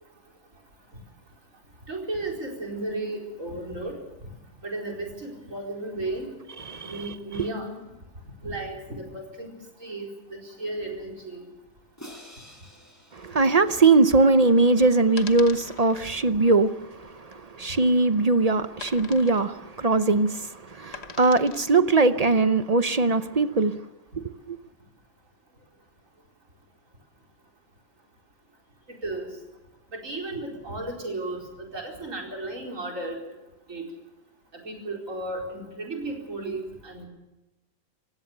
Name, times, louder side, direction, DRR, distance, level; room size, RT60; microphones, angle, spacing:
voice 1, 1.9-4.0 4.6-6.3 6.8-7.8 8.4-9.5 9.8-11.4 29.0-29.3 29.9-31.5 31.7-33.2 33.7-33.9 34.6-37.1, right 2 dB, 55° right, 5.0 m, -34 dB
voice 2, 6.6-7.0 13.1-23.8 24.1-24.6, right 3 dB, 40° right, 0.6 m, -21 dB
Crash cymbal, 12.0-14.2, equal, 10° left, 4.4 m, -48 dB
sound 1, 14.3-21.8, left 6 dB, 50° left, 1.3 m, -44 dB
27.5 x 16.5 x 6.7 m
omnidirectional pair, 1.6 m